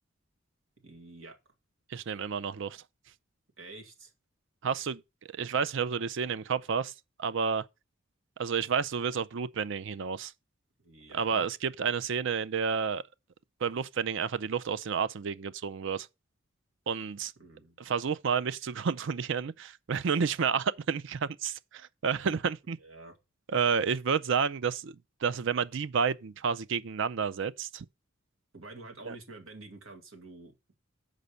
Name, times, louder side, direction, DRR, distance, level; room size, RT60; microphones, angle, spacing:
voice 1, 0.8-1.4 3.6-4.1 10.8-11.5 17.4-17.8 22.8-23.2 28.5-30.5, right 2 dB, 85° right, 2.1 m, -48 dB
voice 2, 1.9-2.8 4.6-5.0 5.3-6.9 7.2-7.6 8.4-10.3 11.1-13.0 13.6-16.1 16.9-17.3 17.8-22.8 23.5-27.9 29.1-29.2, right 6 dB, 65° right, 0.5 m, -30 dB
6.5 x 5.1 x 6.9 m
head